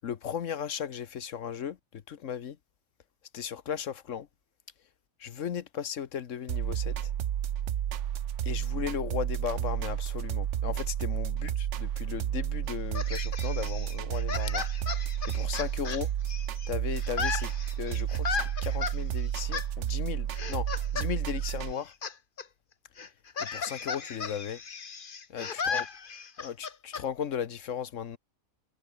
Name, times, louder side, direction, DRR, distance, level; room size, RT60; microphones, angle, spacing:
voice 1, 0.0-1.8 2.1-2.6 3.3-4.3 5.2-7.1 8.4-11.5 11.8-14.6 15.3-16.1 16.7-17.5 17.8-21.9 23.4-24.6 25.3-25.8 26.4-28.2, left 8 dB, 60° left, 1.3 m, -36 dB
sound 1, 6.5-21.7, right 10 dB, 60° right, 1.0 m, -31 dB
sound 2, 12.9-16.7 17.0-19.0 19.5-19.7 20.3-21.1 21.4-22.1 22.4-22.5 23.0-27.0, left 5 dB, 40° left, 1.2 m, -35 dB
omnidirectional pair, 1.5 m